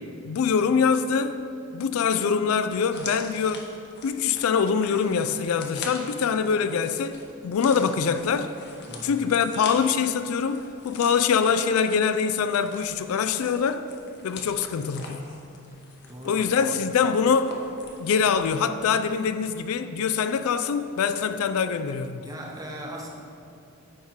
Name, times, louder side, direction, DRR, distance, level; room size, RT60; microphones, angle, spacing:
voice 1, 0.2-1.4 1.7-3.7 4.0-8.6 9.0-13.9 14.2-15.2 16.2-17.6 18.0-22.2, left 6 dB, 80° left, 11 dB, 0.3 m, -24 dB
plant crackle, 2.9-18.6 18.8-19.0, left 4 dB, 50° left, 0.8 m, -43 dB
voice 2, 16.1-16.7 22.2-23.1, right 1 dB, 15° right, -1 dB, 0.7 m, -39 dB
9.5 x 3.6 x 4.6 m, 2.5 s
head